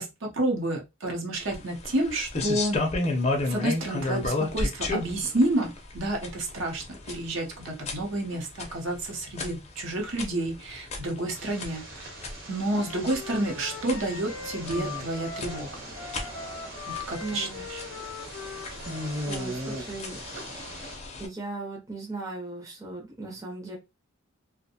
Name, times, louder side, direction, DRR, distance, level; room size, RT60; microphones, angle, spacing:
voice 1, 0.0-2.8 3.4-12.0 12.5-15.8 16.9-17.8, right 1 dB, 60° right, 1 dB, 0.7 m, -30 dB
sound 1, 1.4-21.3, left 2 dB, 30° left, 0.5 m, -34 dB
sound 2, 11.3-21.0, right 1 dB, 45° right, 1.1 m, -40 dB
Wind instrument woodwind instrument, 12.6-19.2, left 5 dB, 80° left, 0.5 m, -41 dB
voice 2, 17.2-17.6 19.3-20.2 21.2-23.8, right 2 dB, 15° right, -1 dB, 0.6 m, -37 dB
2.6 x 2.1 x 2.7 m, 0.24 s
head